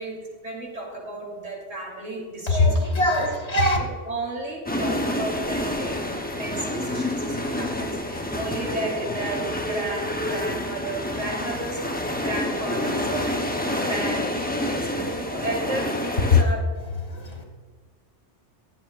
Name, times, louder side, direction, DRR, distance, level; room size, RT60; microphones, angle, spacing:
voice 1, 0.0-2.9 3.2-3.3 4.1-5.9 6.3-14.3 14.5-16.6 17.1-17.2, right 1 dB, 85° right, -3 dB, 3.7 m, -33 dB
voice 2, 2.5-3.8 16.3-16.4 16.8-17.4, left 3 dB, 60° left, 0 dB, 2.6 m, -21 dB
sound 1, 4.7-16.4, left 1 dB, 10° left, 0.7 m, -28 dB
23.0 x 7.8 x 2.5 m, 1.5 s
omnidirectional pair, 1.2 m